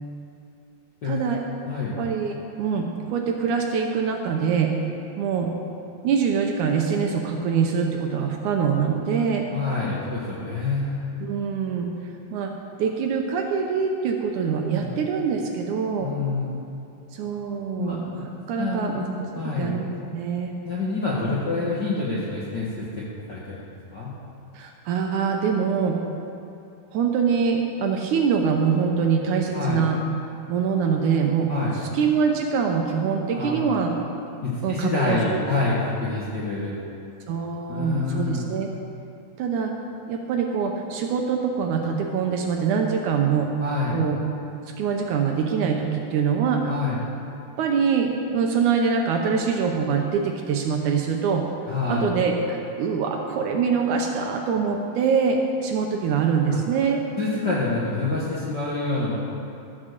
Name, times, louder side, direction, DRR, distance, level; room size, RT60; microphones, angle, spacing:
voice 1, 1.1-1.4 2.0-4.7 5.2-5.5 6.0-9.4 11.2-11.9 12.3-12.5 12.8-16.1 17.1-19.0 19.6-19.9 20.1-20.5 24.5-26.0 26.9-30.0 30.5-33.9 34.6-35.4 37.3-38.7 39.4-39.7 40.1-43.5 43.9-44.2 44.8-46.6 47.6-51.4 51.9-57.0, right 6 dB, 75° right, 2 dB, 2.0 m, -24 dB
voice 2, 1.7-2.0 9.5-11.0 14.8-14.9 16.0-16.5 17.8-18.0 18.6-19.8 20.6-22.9 23.3-24.1 29.5-29.8 31.5-31.8 33.3-33.9 34.4-36.8 37.7-38.5 43.6-44.0 46.7-47.0 51.7-52.1 56.5-56.6 57.2-59.2, left 3 dB, 50° left, -7 dB, 1.3 m, -27 dB
13.0 x 7.3 x 6.6 m, 2.7 s
omnidirectional pair, 4.0 m